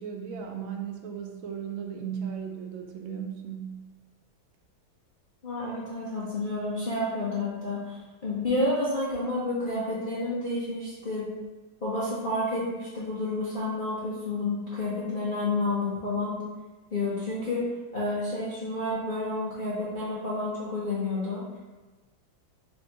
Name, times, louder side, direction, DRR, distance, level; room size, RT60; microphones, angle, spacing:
voice 1, 0.0-3.8, right 7 dB, 80° right, 3 dB, 1.4 m, -36 dB
voice 2, 5.4-11.3 11.8-16.4 16.9-17.6 17.9-21.4, left 2 dB, 90° left, -8 dB, 0.4 m, -30 dB
3.5 x 2.6 x 4.5 m, 1.2 s
omnidirectional pair, 2.1 m